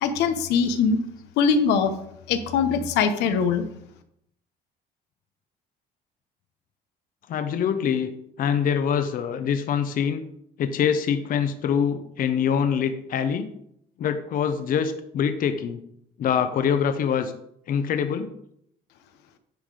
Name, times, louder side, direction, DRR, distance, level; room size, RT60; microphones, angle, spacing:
voice 1, 0.0-1.0 1.4-1.9 2.3-3.6, left 6 dB, 85° left, 8 dB, 0.8 m, -22 dB
voice 2, 7.3-8.1 8.4-10.2 10.6-13.5 14.0-15.8 16.2-17.3 17.7-18.3, left 7 dB, 55° left, 9 dB, 0.7 m, -24 dB
10.5 x 3.9 x 4.8 m, 0.73 s
cardioid pair, 110°, 17 cm